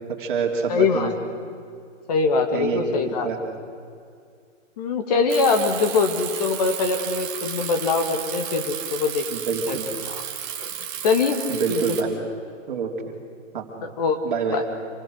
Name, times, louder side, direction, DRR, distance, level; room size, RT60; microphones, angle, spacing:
voice 1, 0.2-1.1 2.5-2.8 3.1-3.4 9.3-9.9 11.5-12.2 12.7-12.9 13.5-13.6 14.2-14.6, right 5 dB, 40° right, 1 dB, 3.1 m, -26 dB
voice 2, 0.7-1.1 2.1-3.3 4.8-9.2 9.7-9.8 10.1-10.2 10.6-10.7 11.0-11.4 11.7-11.8 13.8-14.2 14.5-14.6, left 4 dB, 30° left, 5 dB, 2.0 m, -23 dB
Bicycle, 5.3-12.0, right 10 dB, 15° right, 1.3 m, -33 dB
27.0 x 20.0 x 6.4 m, 2.3 s
hypercardioid pair, 170°, 38 cm